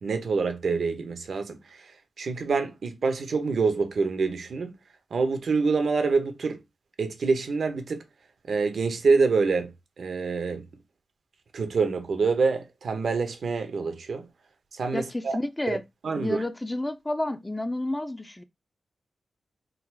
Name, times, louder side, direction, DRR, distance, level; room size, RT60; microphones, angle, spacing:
voice 1, 0.0-4.7 5.1-6.6 7.0-8.0 8.5-9.7 10.0-10.6 11.5-14.3 14.7-15.4 15.7-15.8 16.0-16.4, right 4 dB, 75° right, 0.9 m, -26 dB
voice 2, 14.9-15.8 16.2-18.4, left 1 dB, 15° left, 0.5 m, -30 dB
3.9 x 2.5 x 4.5 m
wide cardioid pair, 80°, 0 cm